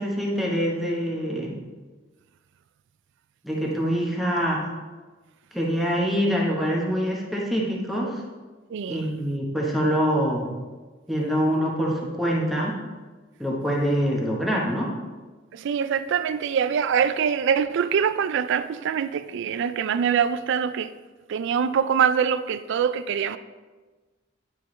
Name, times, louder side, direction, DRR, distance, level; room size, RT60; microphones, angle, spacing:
voice 1, 0.0-1.6 3.4-4.6 5.5-8.2 8.9-10.5 11.1-12.7 13.4-14.9, equal, ahead, -3 dB, 1.1 m, -25 dB
voice 2, 8.7-9.0 15.5-20.9 21.3-23.4, right 7 dB, 65° right, 12 dB, 0.3 m, -24 dB
9.8 x 4.5 x 3.2 m, 1.3 s
head